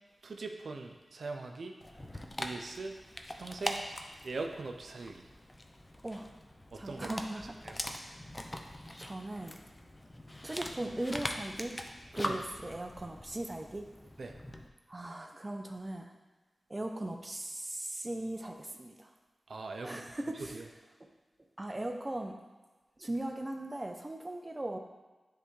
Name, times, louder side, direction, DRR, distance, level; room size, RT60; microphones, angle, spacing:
voice 1, 0.2-1.7 2.4-2.9 3.3-3.8 4.2-5.3 6.7-7.1 7.6-7.8 12.2-12.4 14.2-14.3 19.5-20.0 20.5-20.6, right 3 dB, 70° right, 3 dB, 0.5 m, -41 dB
Dog, 1.8-14.7, left 1 dB, 20° left, 0.5 m, -42 dB
voice 2, 6.7-7.5 8.0-8.6 9.0-9.6 10.4-11.8 12.1-13.9 14.9-16.1 16.7-19.1 19.8-20.6 21.6-22.4 23.0-24.8, right 1 dB, 25° right, 4 dB, 0.6 m, -39 dB
10.0 x 3.4 x 3.2 m, 1.2 s
wide cardioid pair, 75°, 0 cm